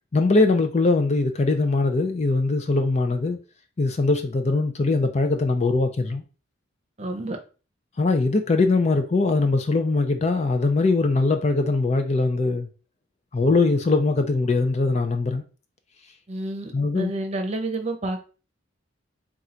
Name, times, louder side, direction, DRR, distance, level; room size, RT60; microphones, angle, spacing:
voice 1, 0.1-3.4 3.8-6.2 8.0-12.7 13.3-15.4 16.7-17.1, left 3 dB, 35° left, 0.4 m, -21 dB
voice 2, 7.0-7.4 16.3-18.2, right 2 dB, 35° right, 0.8 m, -29 dB
3.9 x 2.4 x 4.3 m
head